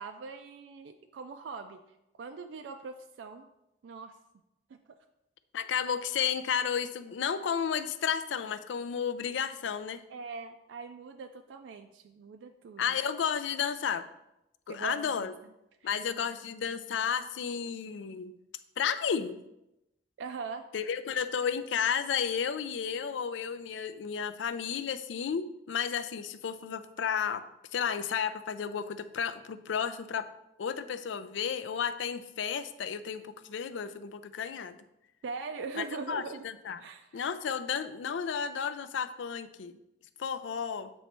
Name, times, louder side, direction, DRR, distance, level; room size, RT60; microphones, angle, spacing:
voice 1, 0.0-1.8 2.1-3.5 3.8-4.2 4.7-4.8 10.1-13.0 14.7-15.3 15.8-15.9 20.2-20.7 35.2-36.4 36.8-37.2, right 4 dB, 80° right, 6 dB, 0.3 m, -41 dB
voice 2, 5.5-10.0 12.8-14.1 14.7-15.3 15.8-18.3 18.8-19.4 20.7-27.4 27.7-30.3 30.6-34.8 35.8-36.8 37.1-39.7 40.2-40.9, left 7 dB, 80° left, 12 dB, 0.4 m, -32 dB
7.8 x 3.1 x 4.4 m, 0.89 s
head